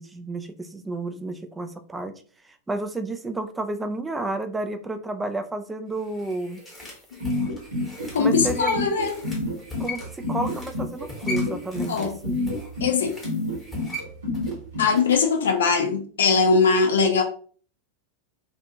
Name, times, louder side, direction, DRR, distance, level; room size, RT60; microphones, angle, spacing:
voice 1, 0.0-2.1 2.7-6.6 8.2-8.7 9.8-12.4, right 2 dB, 10° right, 7 dB, 0.3 m, -31 dB
sound 1, 5.9-15.3 15.6-15.7, left 1 dB, 5° left, 1.0 m, -40 dB
sound 2, 7.2-14.8, left 2 dB, 70° right, 1.1 m, -27 dB
voice 2, 8.1-9.2 11.9-12.2 12.8-13.1 14.8-17.2, left 4 dB, 65° left, 5 dB, 0.5 m, -21 dB
2.5 x 2.3 x 2.7 m, 0.43 s
figure-of-eight pair, 90°, 0 cm